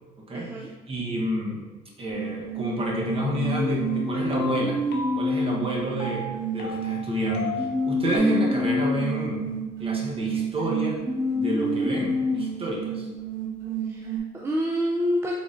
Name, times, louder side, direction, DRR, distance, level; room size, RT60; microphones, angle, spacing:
voice 1, 0.3-0.7 13.8-15.3, equal, 15° right, -2 dB, 0.4 m, -27 dB
voice 2, 0.9-1.7 2.0-4.8 5.1-9.4 9.8-11.0 11.3-13.1, right 1 dB, 35° right, -2 dB, 1.0 m, -29 dB
sound 1, 2.1-14.2, right 1 dB, 60° right, 1.3 m, -29 dB
Creepy music, 3.0-8.2, left 4 dB, 75° left, 0.7 m, -33 dB
3.8 x 3.6 x 2.5 m, 1.2 s
cardioid pair, 110°, 17 cm